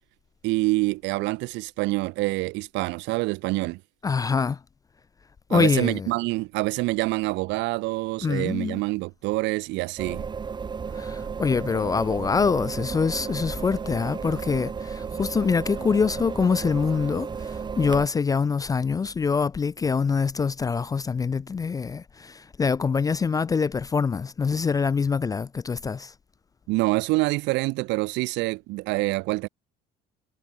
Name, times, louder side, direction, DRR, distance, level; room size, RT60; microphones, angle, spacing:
voice 1, 0.4-3.8 5.5-10.2 26.7-29.5, right 23 dB, 70° right, 0.5 m, -26 dB
voice 2, 4.0-4.6 5.5-6.1 8.2-8.8 10.9-26.1, left 5 dB, 20° left, 0.4 m, -25 dB
sound 1, 10.0-18.1, right 6 dB, 25° right, 1.0 m, -33 dB
cardioid pair, 120°, 19 cm